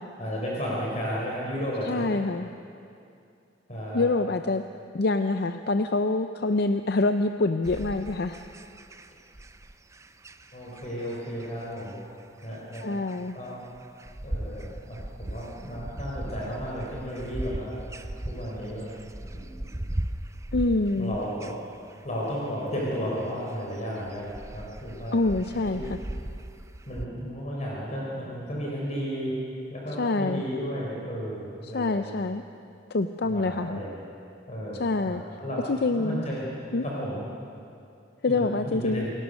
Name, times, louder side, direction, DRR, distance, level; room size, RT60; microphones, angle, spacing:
voice 1, 0.2-2.1 3.7-4.0 10.5-12.0 12.4-12.9 13.3-13.6 14.2-17.8 18.2-18.9 19.3-19.9 21.0-21.6 22.0-25.2 25.7-25.9 26.9-29.4 29.7-32.1 33.2-34.0 34.5-35.6 36.0-36.5 36.8-37.2 38.3-39.1, equal, 40° left, -4 dB, 4.0 m, -33 dB
voice 2, 1.8-2.5 3.9-4.6 4.9-8.4 12.8-13.4 20.5-21.2 25.1-26.0 30.0-30.4 31.7-32.4 32.9-33.8 34.7-35.2 35.7-36.2 36.7-36.8 38.2-39.1, left 3 dB, 60° left, 8 dB, 0.6 m, -26 dB
sound 1, 7.6-27.1, right 1 dB, 15° right, 0.6 m, -39 dB
27.5 x 17.5 x 6.4 m, 2.5 s
head